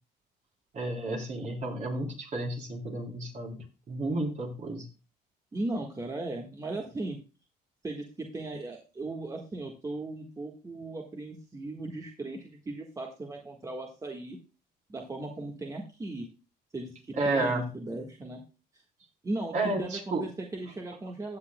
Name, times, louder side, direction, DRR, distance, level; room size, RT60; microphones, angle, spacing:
voice 1, 0.7-4.9 17.2-17.7 19.5-20.2, right 2 dB, 45° right, 0 dB, 3.5 m, -31 dB
voice 2, 5.5-7.2 7.8-14.4 14.9-16.3 16.7-18.4 19.2-21.4, right 2 dB, 20° right, 1 dB, 1.5 m, -37 dB
16.0 x 8.5 x 2.2 m, 0.33 s
cardioid pair, 110°, 17 cm